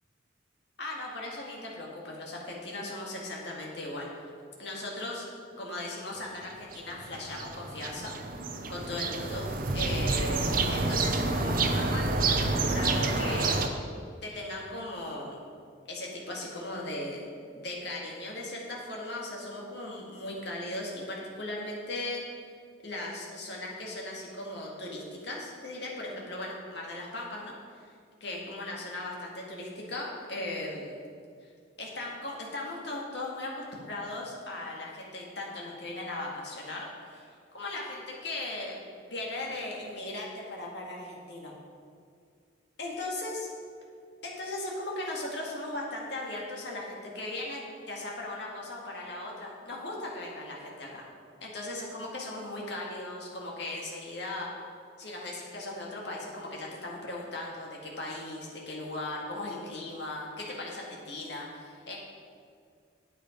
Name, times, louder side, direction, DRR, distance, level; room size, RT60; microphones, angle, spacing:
voice 1, 0.8-4.3 4.6-5.3 5.6-8.4 8.7-9.5 9.7-13.7 14.2-15.4 15.9-17.3 17.5-22.2 22.8-27.9 28.2-31.1 31.4-31.5 31.8-41.5 42.8-43.5 44.2-51.1 51.4-54.5 55.0-62.0, left 2 dB, 60° left, -2 dB, 2.0 m, -38 dB
sound 1, 6.7-13.7, right 3 dB, 45° right, 0.7 m, -28 dB
8.9 x 8.4 x 5.2 m, 2.2 s
head